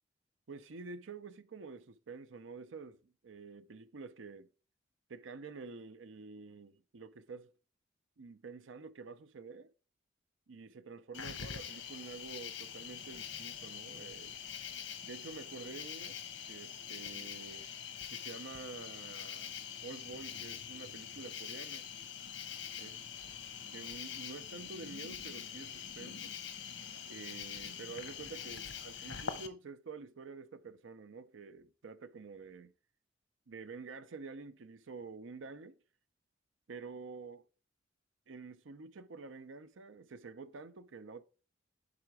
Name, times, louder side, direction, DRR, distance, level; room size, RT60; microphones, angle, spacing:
voice 1, 0.5-4.5 5.1-7.5 8.2-9.7 10.5-14.4 15.0-16.2 16.4-17.7 18.1-19.6 19.8-21.9 22.8-23.1 23.7-26.3 27.1-32.7 33.5-35.8 36.7-37.4 38.3-41.2, right 4 dB, 85° right, 0.6 m, -48 dB
Cricket, 11.1-29.5, left 8 dB, 70° left, 0.8 m, -44 dB
5.7 x 4.9 x 4.7 m
head